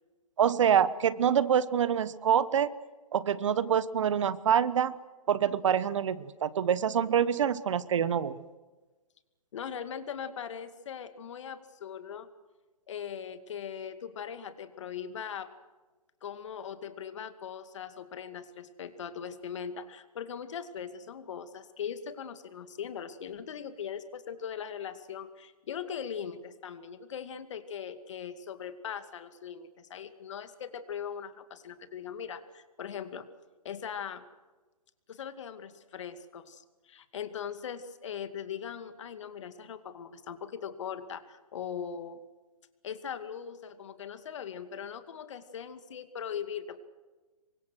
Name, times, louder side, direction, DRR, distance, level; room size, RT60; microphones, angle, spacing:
voice 1, 0.4-2.7 3.1-5.0 5.3-8.4, right 8 dB, 55° right, 17 dB, 1.2 m, -26 dB
voice 2, 9.5-12.3 12.9-15.5 16.2-33.3 33.6-34.2 35.1-42.2 42.8-46.8, left 8 dB, 50° left, 9 dB, 2.3 m, -40 dB
27.5 x 24.0 x 6.4 m, 1.2 s
hypercardioid pair, 145°, 19 cm